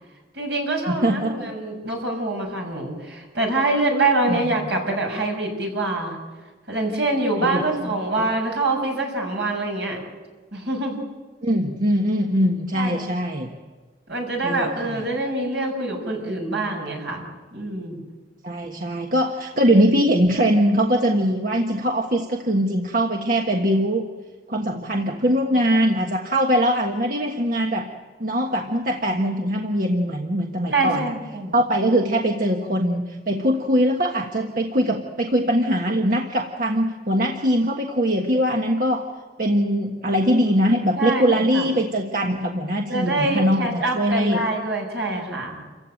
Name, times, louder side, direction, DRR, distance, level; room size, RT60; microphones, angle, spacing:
voice 1, 0.3-6.2 6.7-10.0 10.5-11.0 12.7-13.0 14.1-18.0 30.7-31.5 41.0-41.7 42.9-45.7, right 2 dB, 75° right, 2 dB, 6.3 m, -25 dB
voice 2, 0.9-1.5 4.3-4.4 7.4-8.2 11.4-13.5 14.4-15.0 18.4-24.0 24.5-27.9 28.2-31.1 31.5-39.1 39.4-44.5, equal, 50° right, 2 dB, 1.5 m, -22 dB
28.5 x 15.5 x 9.0 m, 1.4 s
head